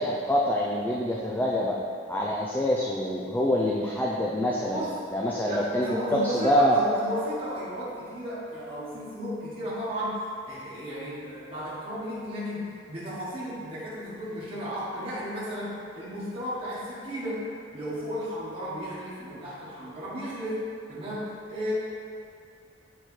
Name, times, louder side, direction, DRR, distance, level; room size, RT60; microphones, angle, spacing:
voice 1, 0.0-1.8 2.1-4.8 5.1-6.8, equal, 10° left, -4 dB, 0.4 m, -26 dB
voice 2, 5.5-20.6 20.9-21.7, equal, 30° right, -10 dB, 1.2 m, -34 dB
7.8 x 4.4 x 3.2 m, 2.5 s
head